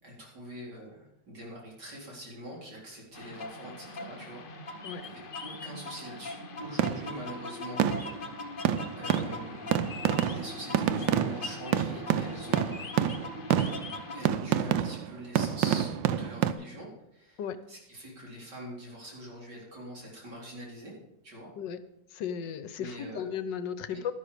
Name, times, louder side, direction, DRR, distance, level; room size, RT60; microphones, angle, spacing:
voice 1, 0.0-7.8 9.0-9.9 10.2-12.8 14.1-15.9 16.2-17.4 17.7-20.9 21.2-21.5 22.8-23.2 23.9-24.0, equal, 65° right, -3 dB, 4.6 m, -44 dB
sound 1, 3.1-14.3, left 3 dB, 40° left, 0.9 m, -41 dB
sound 2, 6.8-7.3 7.8-8.3 8.6-16.5, right 10 dB, 90° right, 1.4 m, -28 dB
voice 2, 22.1-24.1, left 7 dB, 75° left, 12 dB, 1.4 m, -36 dB
11.5 x 11.5 x 5.0 m, 0.88 s
omnidirectional pair, 2.0 m